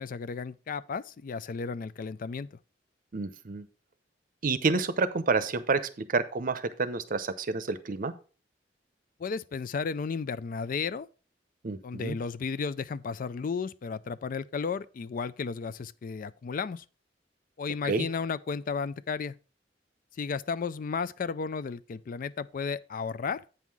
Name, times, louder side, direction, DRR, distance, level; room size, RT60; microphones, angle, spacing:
voice 1, 0.0-2.6 9.2-11.1 11.8-16.8 17.6-19.4 20.2-23.4, left 5 dB, 50° left, 0.4 m, -33 dB
voice 2, 3.1-3.6 4.4-5.8 6.1-8.1 11.6-12.2 17.9-18.1, right 4 dB, 50° right, 0.7 m, -29 dB
8.2 x 5.6 x 4.6 m
head